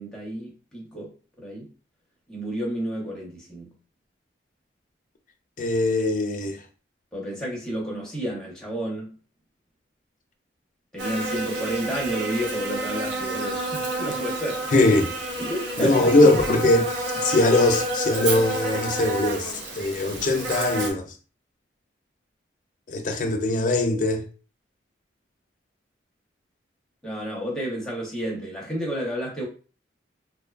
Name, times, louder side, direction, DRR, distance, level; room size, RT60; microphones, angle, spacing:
voice 1, 0.0-1.7 2.3-3.7 7.1-9.1 10.9-14.8 15.4-16.3 27.0-29.5, equal, 5° left, 0.7 m, -31 dB
voice 2, 5.6-6.6 14.7-15.1 15.8-16.9 17.2-21.1 22.9-24.2, left 2 dB, 45° left, 0.4 m, -21 dB
Buzz, 11.0-20.9, right 2 dB, 75° right, 0.5 m, -29 dB
2.6 x 2.2 x 2.3 m
head